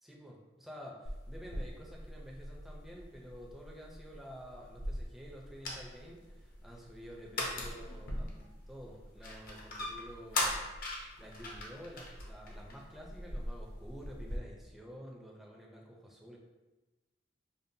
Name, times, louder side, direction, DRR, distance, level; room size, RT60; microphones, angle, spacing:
voice 1, 0.0-16.4, equal, ahead, -2 dB, 0.4 m, -50 dB
sound 1, 1.0-14.4, left 1 dB, 50° left, 0.6 m, -41 dB
5.2 x 2.1 x 2.7 m, 1.1 s
head